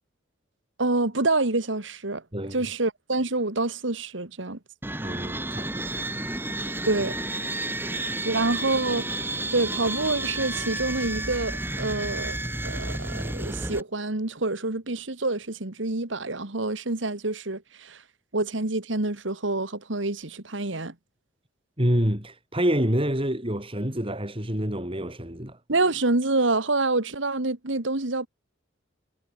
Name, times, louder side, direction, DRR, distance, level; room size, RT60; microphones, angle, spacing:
voice 1, 0.8-2.2 2.5-4.6 6.8-7.2 7.8-12.4 12.6-18.0 18.3-20.9 25.7-28.3, right 2 dB, 65° right, 2.0 m, -27 dB
sound 1, 4.8-13.8, right 2 dB, 10° right, 2.0 m, -31 dB
voice 2, 5.0-6.3 21.8-25.6, equal, 25° right, 5.1 m, -27 dB
head